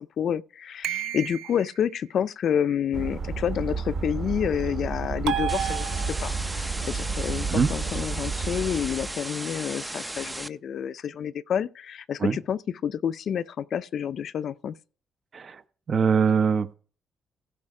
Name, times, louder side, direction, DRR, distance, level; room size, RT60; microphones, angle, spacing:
voice 1, 0.0-14.8, left 8 dB, 65° left, 0.5 m, -29 dB
sound 1, 0.8-1.8 5.3-6.5, right 10 dB, 90° right, 0.7 m, -31 dB
sound 2, 2.9-9.1, right 4 dB, 65° right, 2.0 m, -31 dB
sound 3, 5.5-10.5, right 1 dB, 10° right, 0.5 m, -36 dB
voice 2, 15.9-16.7, right 6 dB, 45° right, 0.9 m, -22 dB
15.5 x 5.5 x 4.9 m
cardioid pair, 95°, 0 cm